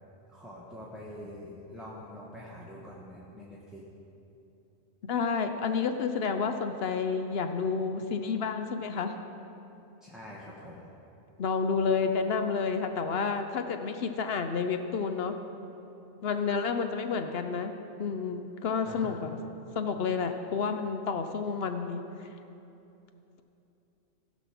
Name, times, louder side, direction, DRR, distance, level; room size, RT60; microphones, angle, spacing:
voice 1, 0.3-3.9 10.0-10.9 18.8-19.1, left 1 dB, ahead, -6 dB, 1.2 m, -45 dB
voice 2, 5.0-9.1 11.4-15.4 16.2-17.7 18.0-19.3 19.8-22.3, left 5 dB, 60° left, 7 dB, 0.8 m, -30 dB
16.0 x 6.3 x 5.9 m, 2.9 s
omnidirectional pair, 1.3 m